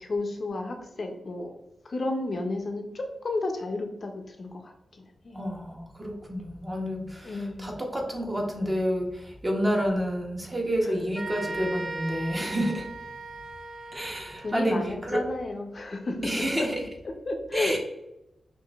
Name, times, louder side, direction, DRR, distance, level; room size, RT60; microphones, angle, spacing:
voice 1, 0.0-1.5 1.8-5.4 7.2-7.7 10.8-11.0 14.4-16.7 17.0-17.8, left 2 dB, 45° left, 4 dB, 0.4 m, -32 dB
voice 2, 5.3-12.9 13.9-15.2 16.2-16.8 17.5-17.8, equal, 20° right, 0 dB, 0.7 m, -29 dB
sound 1, 11.1-14.8, right 2 dB, 45° right, 0.9 m, -38 dB
5.5 x 2.5 x 2.3 m, 0.88 s
wide cardioid pair, 125°, 0 cm